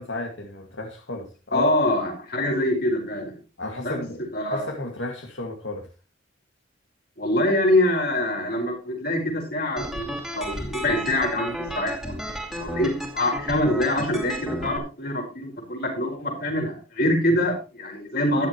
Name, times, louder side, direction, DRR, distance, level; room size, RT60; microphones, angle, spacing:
voice 1, 0.0-1.7 3.6-5.9, left 2 dB, 90° left, 3 dB, 2.0 m, -32 dB
voice 2, 1.5-3.4 3.8-4.0 4.3-4.7 7.2-12.2 12.5-18.5, left 1 dB, 55° left, 2 dB, 4.8 m, -25 dB
sound 1, 9.8-14.8, equal, ahead, 2.2 m, -33 dB
13.5 x 11.0 x 3.0 m, 0.33 s
head